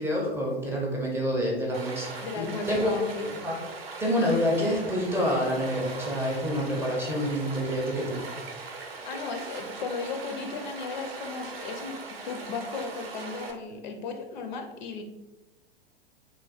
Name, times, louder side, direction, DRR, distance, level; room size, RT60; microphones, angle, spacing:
voice 1, 0.0-3.0 3.4-3.6 4.0-8.3, equal, 10° right, -3 dB, 0.4 m, -27 dB
Stream, 1.7-13.5, right 3 dB, 75° right, 0.6 m, -40 dB
voice 2, 1.9-3.5 9.0-15.0, left 4 dB, 50° left, 5 dB, 0.4 m, -36 dB
3.0 x 2.2 x 2.3 m, 1.1 s
figure-of-eight pair, 95°, 30 cm